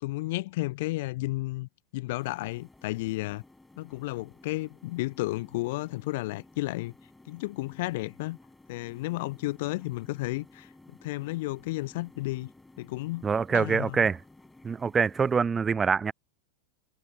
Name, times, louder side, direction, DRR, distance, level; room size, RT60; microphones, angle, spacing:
voice 1, 0.0-3.4 3.8-6.9 7.3-8.4 8.7-12.5 12.8-14.1, left 20 dB, 50° left, 0.6 m, -33 dB
sound 1, 2.2-15.4, left 2 dB, 5° left, 6.8 m, -55 dB
voice 2, 13.2-14.2 14.6-16.1, right 5 dB, 15° right, 0.5 m, -25 dB
figure-of-eight pair, 90°, 0 cm